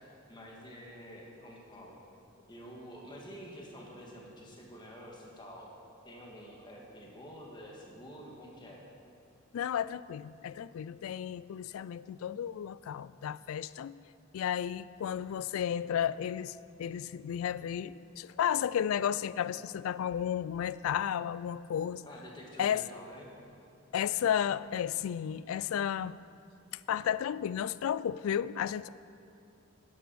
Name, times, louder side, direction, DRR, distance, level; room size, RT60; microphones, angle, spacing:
voice 1, 0.3-2.0 2.5-5.8 6.0-8.8 22.0-23.3, equal, 20° left, -2 dB, 1.6 m, -48 dB
voice 2, 9.5-14.0 14.3-22.0 22.6-22.8 23.9-26.2 26.7-28.9, left 9 dB, 80° left, 17 dB, 0.3 m, -33 dB
10.5 x 8.4 x 6.1 m, 2.6 s
head